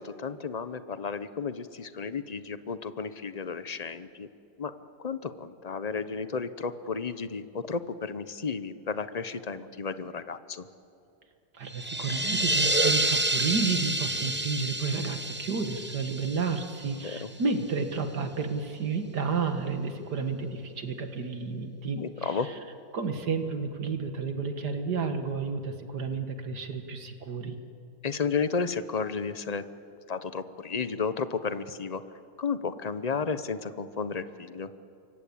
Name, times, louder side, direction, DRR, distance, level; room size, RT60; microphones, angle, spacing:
voice 1, 0.0-4.3 4.6-4.7 5.0-10.7 17.0-17.3 22.0-22.5 28.0-29.6 30.1-32.0 32.4-34.7, left 5 dB, 40° left, 12 dB, 0.5 m, -33 dB
voice 2, 11.5-22.4 22.9-27.6, right 5 dB, 65° right, 7 dB, 2.1 m, -31 dB
sound 1, 11.7-17.3, right 2 dB, 10° right, 0.7 m, -29 dB
28.0 x 24.0 x 8.6 m, 2.7 s
omnidirectional pair, 2.0 m